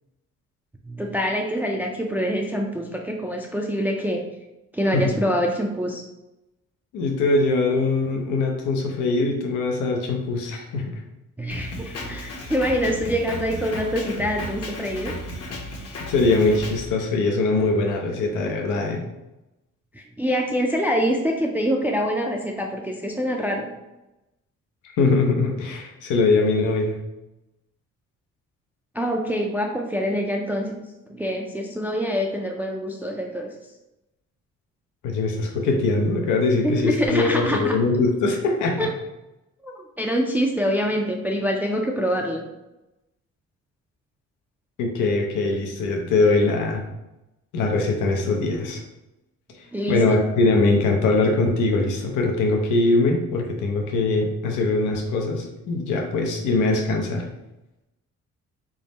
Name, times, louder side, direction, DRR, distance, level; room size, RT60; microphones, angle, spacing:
voice 1, 0.8-4.2 4.7-6.0 11.4-15.1 19.9-23.7 28.9-30.8 31.1-33.5 36.6-37.8 38.8-38.9 39.6-42.4 49.7-50.2, equal, 5° right, 1 dB, 0.3 m, -25 dB
voice 2, 6.9-11.0 16.1-19.1 24.8-27.0 35.0-38.9 44.8-46.8 47.5-48.8 49.5-57.3, left 3 dB, 90° left, 1 dB, 0.6 m, -22 dB
Drum kit, 11.5-16.8, left 1 dB, 55° left, 0.9 m, -34 dB
3.5 x 2.0 x 4.0 m, 0.96 s
cardioid pair, 90°, 30 cm